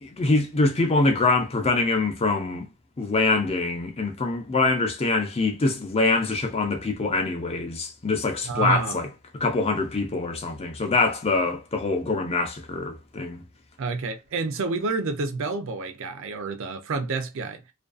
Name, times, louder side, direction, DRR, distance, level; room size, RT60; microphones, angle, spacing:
voice 1, 0.0-2.7 3.0-9.1 9.3-13.4, left 3 dB, 25° left, 0.5 m, -24 dB
voice 2, 8.4-9.0 13.8-17.6, right 4 dB, 60° right, 0.4 m, -29 dB
2.5 x 2.3 x 2.3 m
head